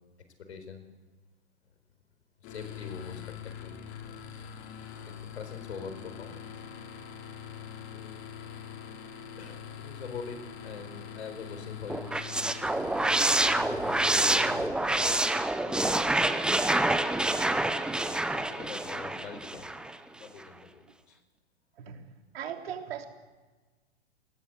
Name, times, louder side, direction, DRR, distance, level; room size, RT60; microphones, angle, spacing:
voice 1, 0.4-0.9 2.4-4.2 5.0-6.5 7.8-8.3 9.4-12.9 13.9-14.5 14.8-16.2 18.1-19.7 20.2-21.2, left 5 dB, 75° left, 9 dB, 4.4 m, -44 dB
sound 1, 2.4-14.7, left 8 dB, 35° left, 3.0 m, -43 dB
sound 2, 11.9-20.0, right 2 dB, 5° right, 0.7 m, -27 dB
voice 2, 22.3-23.1, right 9 dB, 65° right, 4 dB, 3.6 m, -38 dB
21.0 x 19.5 x 8.1 m, 1.3 s
hypercardioid pair, 125°, 33 cm